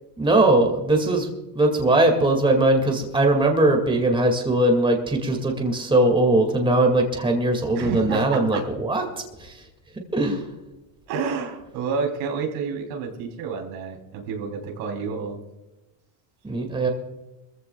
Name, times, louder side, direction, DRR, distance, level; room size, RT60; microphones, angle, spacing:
voice 1, 0.2-1.3 1.6-9.0 9.4-9.5 10.1-10.4 16.4-16.9, right 2 dB, 10° right, 3 dB, 2.2 m, -20 dB
voice 2, 7.8-8.6 11.1-15.4, right 5 dB, 75° right, 2 dB, 3.6 m, -29 dB
23.0 x 15.0 x 2.4 m, 1.0 s
cardioid pair, 130°, 49 cm